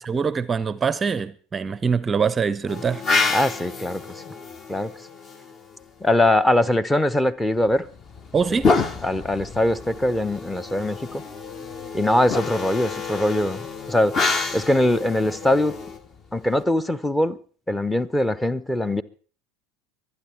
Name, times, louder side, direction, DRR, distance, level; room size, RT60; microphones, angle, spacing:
voice 1, 0.0-3.0 8.3-8.7, right 5 dB, 25° right, 0.6 m, -24 dB
sound 1, 2.7-5.8 7.7-16.6, left 4 dB, 35° left, 1.2 m, -28 dB
voice 2, 3.3-4.2 4.7-4.9 6.0-7.9 8.5-8.6 9.0-11.2 11.9-14.3 14.5-15.8 16.3-17.4 17.7-19.0, left 1 dB, 10° left, 0.8 m, -22 dB
24.0 x 9.8 x 4.5 m
figure-of-eight pair, 70°, 0 cm